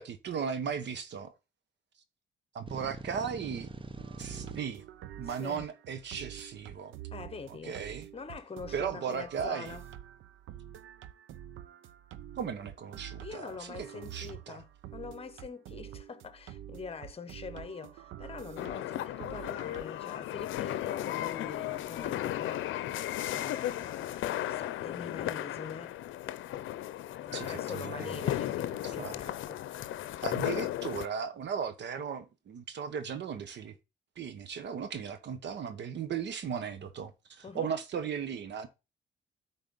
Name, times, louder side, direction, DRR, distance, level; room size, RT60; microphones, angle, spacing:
voice 1, 0.0-1.3 2.5-3.7 4.2-4.8 5.2-6.9 7.6-8.1 8.7-9.8 12.4-14.6 27.3-28.3 28.8-29.2 30.2-33.7 34.2-38.7, right 7 dB, 60° right, 1.1 m, -37 dB
sound 1, 2.7-4.6, right 3 dB, 25° right, 0.9 m, -43 dB
sound 2, 4.0-20.0, right 11 dB, 80° right, 0.7 m, -47 dB
voice 2, 5.2-5.7 7.1-7.8 8.1-9.8 13.2-22.8 23.3-26.0 27.2-30.0 37.4-37.7, left 5 dB, 30° left, 1.1 m, -44 dB
sound 3, 18.6-31.1, left 13 dB, 80° left, 0.6 m, -35 dB
9.1 x 4.1 x 5.4 m
cardioid pair, 90°, 20 cm